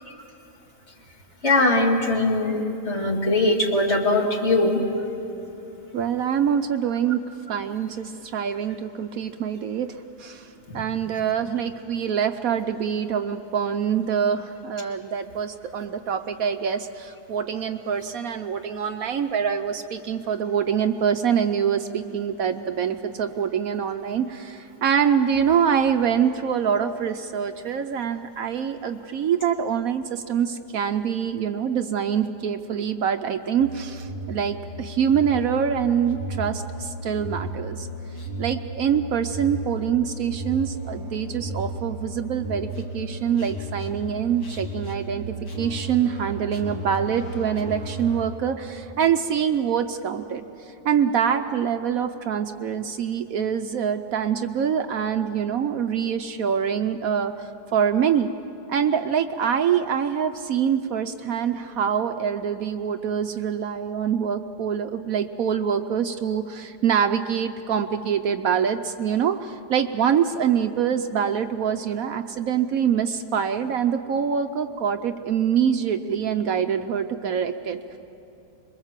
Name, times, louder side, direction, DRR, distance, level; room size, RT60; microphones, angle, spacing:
voice 1, 1.4-4.8 10.7-10.8, left 2 dB, 40° left, 0 dB, 2.6 m, -21 dB
voice 2, 5.9-7.2 7.5-9.9 10.2-10.5 10.7-37.9 38.4-42.7 42.9-50.4 50.8-57.3 57.7-58.3 58.7-78.0, right 8 dB, 65° right, 8 dB, 1.1 m, -25 dB
sound 1, 33.6-48.3, right 1 dB, 65° left, 3.1 m, -34 dB
26.5 x 22.0 x 7.4 m, 2.8 s
omnidirectional pair, 1.7 m